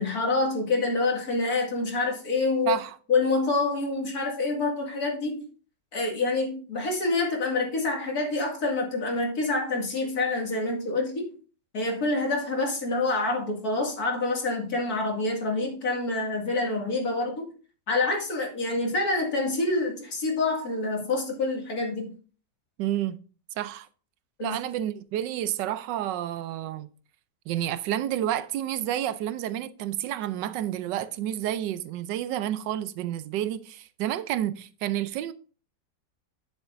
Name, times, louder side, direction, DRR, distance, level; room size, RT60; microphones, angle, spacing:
voice 1, 0.0-2.7 3.1-5.5 5.9-11.3 11.7-17.5 17.9-22.1 24.4-24.6, left 3 dB, 60° left, 2.6 m, -27 dB
voice 2, 2.7-3.0 22.8-23.2 23.6-23.9 24.4-26.9 27.5-35.3, right 12 dB, 85° right, 1.3 m, -30 dB
9.8 x 7.2 x 2.5 m
omnidirectional pair, 1.9 m